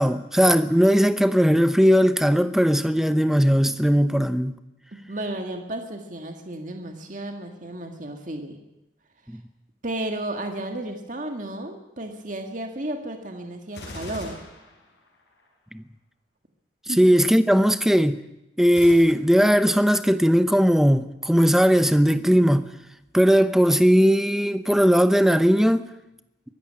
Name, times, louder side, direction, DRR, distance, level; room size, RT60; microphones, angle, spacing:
voice 1, 0.0-4.6 15.7-15.8 17.0-18.2 18.6-22.7 23.1-25.9, equal, ahead, 0.7 m, -18 dB
voice 2, 4.9-8.6 9.8-14.4 16.9-17.0, right 1 dB, 40° right, 1.9 m, -33 dB
Gunshot gunfire, 13.7-15.5 18.7-18.9, left 1 dB, 65° left, 7.0 m, -40 dB
23.0 x 13.5 x 8.7 m
head